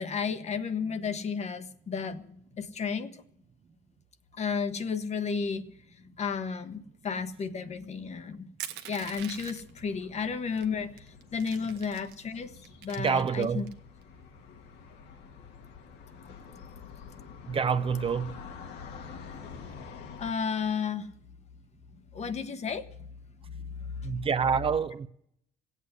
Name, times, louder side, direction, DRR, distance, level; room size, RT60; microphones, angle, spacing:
voice 1, 0.0-3.2 4.3-8.5 8.8-12.6 12.8-13.7 16.2-16.3 20.2-21.1 22.1-22.9 23.5-24.2, left 6 dB, 40° left, 1.1 m, -33 dB
Crushing, 8.6-9.8 10.6-10.7 11.0-12.2 12.6-13.7, right 11 dB, 85° right, 1.1 m, -42 dB
sound 1, 9.0-20.3, left 6 dB, 85° left, 1.8 m, -48 dB
voice 2, 13.0-13.6 17.4-18.3 24.0-25.1, right 6 dB, 35° right, 0.7 m, -27 dB
16.5 x 8.4 x 9.6 m
cardioid pair, 110°, 17 cm